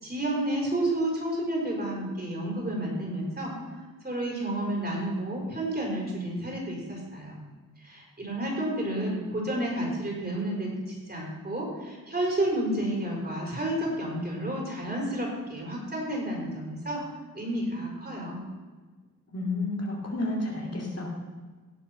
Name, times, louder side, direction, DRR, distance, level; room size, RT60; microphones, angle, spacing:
voice 1, 0.0-3.5 4.0-7.4 7.8-17.0 17.3-18.4, right 1 dB, 25° right, -2 dB, 5.0 m, -31 dB
voice 2, 19.3-21.2, left 2 dB, 45° left, -1 dB, 2.7 m, -31 dB
17.0 x 7.4 x 5.9 m, 1.4 s
wide cardioid pair, 115°, 34 cm